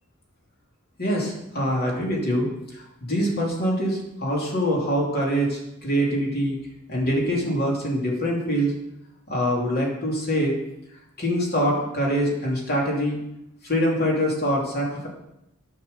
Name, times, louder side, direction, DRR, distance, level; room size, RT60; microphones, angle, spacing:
voice 1, 1.0-6.6 6.9-8.7 9.3-10.6 11.2-13.2 13.6-15.1, equal, 45° left, -2 dB, 2.9 m, -24 dB
9.2 x 6.0 x 6.8 m, 0.86 s
head